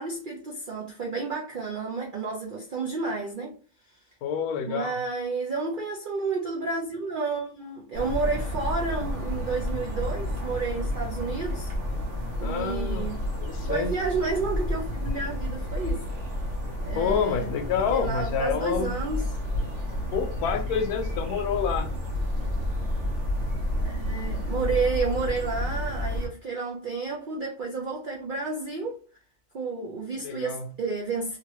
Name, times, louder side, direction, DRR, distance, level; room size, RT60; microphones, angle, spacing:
voice 1, 0.0-3.6 4.7-11.7 12.4-13.2 13.7-16.1 16.8-17.5 17.9-19.2 23.8-29.0 29.5-31.4, right 4 dB, 90° right, 0.4 m, -31 dB
voice 2, 4.2-5.0 12.4-13.1 13.4-13.9 16.9-18.9 20.1-21.9 30.2-30.7, left 7 dB, 80° left, 1.1 m, -28 dB
sound 1, 7.9-26.3, left 1 dB, 45° right, 0.9 m, -30 dB
2.9 x 2.5 x 2.9 m
omnidirectional pair, 1.6 m